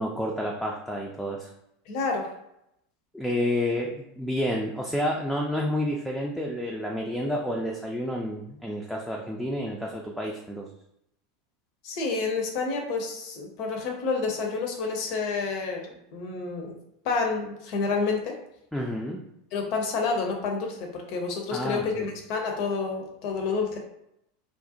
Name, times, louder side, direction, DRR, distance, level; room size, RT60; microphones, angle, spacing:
voice 1, 0.0-1.5 3.1-10.7 18.7-19.2 21.5-22.1, left 1 dB, ahead, -1 dB, 0.3 m, -30 dB
voice 2, 1.9-2.3 11.8-16.8 17.0-18.4 19.5-23.8, left 4 dB, 50° left, 2 dB, 0.5 m, -29 dB
2.4 x 2.0 x 2.7 m, 0.80 s
figure-of-eight pair, 80°, 0 cm